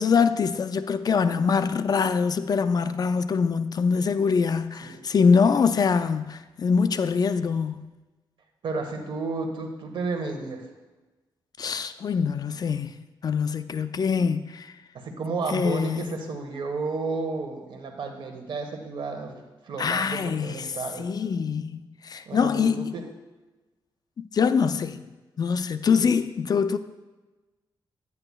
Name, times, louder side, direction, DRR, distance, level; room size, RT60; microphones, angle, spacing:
voice 1, 0.0-7.9 11.6-14.7 15.5-16.2 19.8-20.7 21.0-22.9 24.2-25.0 25.4-26.8, left 5 dB, 50° left, 0.4 m, -24 dB
voice 2, 8.6-10.7 14.9-21.1 22.3-23.0 25.9-26.1, right 3 dB, 70° right, 1.2 m, -32 dB
9.7 x 9.7 x 2.3 m
cardioid pair, 95°, 9 cm